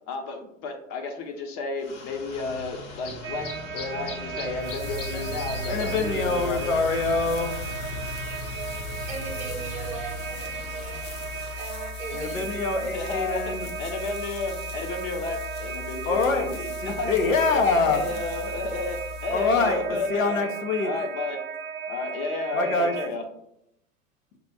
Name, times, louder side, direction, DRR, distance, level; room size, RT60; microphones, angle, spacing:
voice 1, 0.1-6.8 12.9-17.3 17.7-20.5 20.8-21.4 21.9-23.2, left 3 dB, 40° left, 4 dB, 0.7 m, -32 dB
sound 1, 1.8-11.7, left 1 dB, 60° left, 1.1 m, -38 dB
sound 2, 3.2-23.1, right 7 dB, 45° right, 0.5 m, -36 dB
sound 3, 4.4-20.2, left 7 dB, 15° left, 0.3 m, -40 dB
voice 2, 5.7-8.1 12.1-13.7 16.1-16.5 16.8-18.0 19.3-20.9 22.5-22.9, left 3 dB, 75° left, 4 dB, 0.7 m, -25 dB
voice 3, 9.1-11.0 11.6-12.5 17.6-18.1, right 3 dB, 20° right, 0 dB, 0.8 m, -39 dB
6.6 x 2.4 x 2.3 m, 0.77 s
figure-of-eight pair, 85°, 40 cm